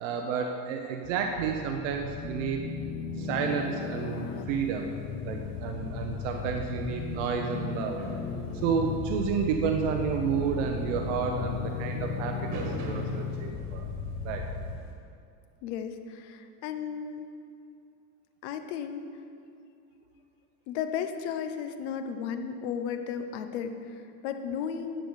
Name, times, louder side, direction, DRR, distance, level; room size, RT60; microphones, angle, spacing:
voice 1, 0.0-2.6 3.2-4.9 5.2-8.0 8.5-13.9 14.2-14.4, right 6 dB, 80° right, 3 dB, 0.9 m, -31 dB
sound 1, 1.0-14.8, left 5 dB, 35° left, 0.6 m, -35 dB
sound 2, 4.0-14.9, right 3 dB, 55° right, 1.6 m, -47 dB
voice 2, 15.6-17.3 18.4-19.1 20.7-25.0, left 7 dB, 70° left, 8 dB, 0.9 m, -34 dB
10.0 x 6.9 x 6.4 m, 2.4 s
cardioid pair, 170°, 36 cm